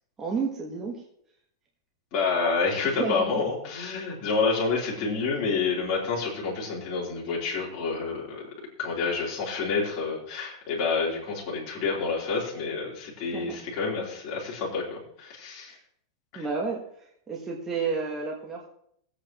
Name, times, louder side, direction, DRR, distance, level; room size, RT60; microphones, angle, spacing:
voice 1, 0.2-1.0 2.8-3.4 13.3-13.6 16.3-16.8 17.3-18.6, right 4 dB, 15° right, -2 dB, 1.4 m, -31 dB
voice 2, 2.1-8.4 8.8-15.8 16.3-16.5, left 4 dB, 35° left, -5 dB, 3.7 m, -28 dB
20.0 x 8.3 x 3.0 m, 0.68 s
supercardioid pair, 170°, 2 cm